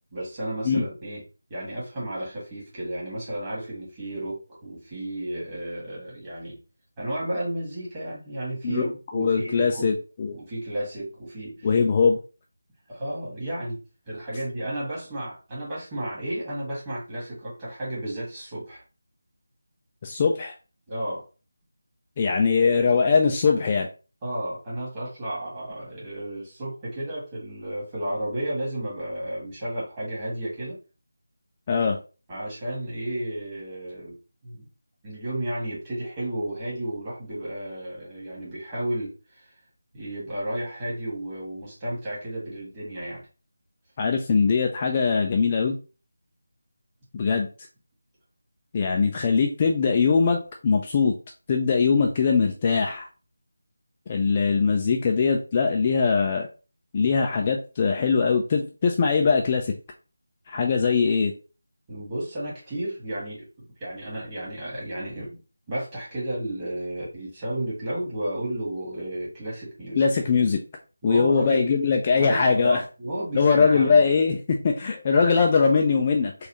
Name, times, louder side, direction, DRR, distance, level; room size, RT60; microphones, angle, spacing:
voice 1, 0.1-1.2 1.5-6.6 7.0-8.9 9.1-10.0 10.3-11.7 12.9-13.8 14.0-18.8 20.9-21.2 24.2-30.8 32.3-34.2 34.4-34.6 35.0-39.5 39.9-43.2 61.9-63.4 63.8-65.4 65.7-70.0 71.0-71.7 72.1-74.0, right 1 dB, 20° right, -7 dB, 1.7 m, -32 dB
voice 2, 9.1-10.3 11.6-12.2 20.0-20.5 22.2-23.9 31.7-32.0 44.0-45.8 47.1-47.5 48.7-51.1 51.5-53.1 54.1-56.5 56.9-59.7 60.5-61.3 70.0-70.6 71.0-72.8 73.3-76.3, left 5 dB, 25° left, 2 dB, 0.3 m, -21 dB
4.0 x 2.4 x 2.9 m, 0.33 s
figure-of-eight pair, 160°, 0 cm